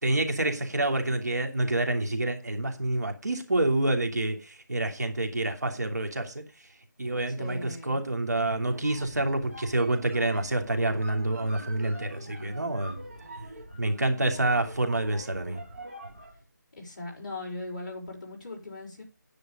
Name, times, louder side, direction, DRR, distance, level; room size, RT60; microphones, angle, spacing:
voice 1, 0.0-6.4 7.0-13.0 13.8-15.6, right 2 dB, 60° right, 5 dB, 2.9 m, -28 dB
voice 2, 7.3-8.0 16.8-19.0, left 2 dB, 25° left, -6 dB, 4.5 m, -39 dB
sound 1, 8.6-16.4, right 1 dB, 45° right, 3.6 m, -44 dB
10.0 x 9.9 x 5.1 m, 0.29 s
figure-of-eight pair, 180°, 10 cm